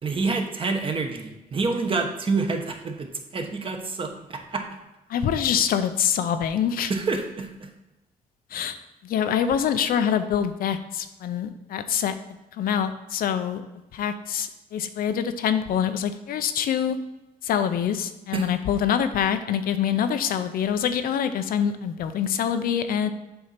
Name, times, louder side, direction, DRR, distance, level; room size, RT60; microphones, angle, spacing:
voice 1, 0.0-4.6 6.9-7.7 18.3-18.5, right 4 dB, 35° right, 4 dB, 1.1 m, -27 dB
voice 2, 5.1-6.9 8.5-8.8 9.0-12.1 12.5-13.6 13.9-17.0 17.4-23.1, left 8 dB, 70° left, 10 dB, 0.6 m, -25 dB
7.7 x 2.8 x 5.8 m, 1.0 s
cardioid pair, 90°, 15 cm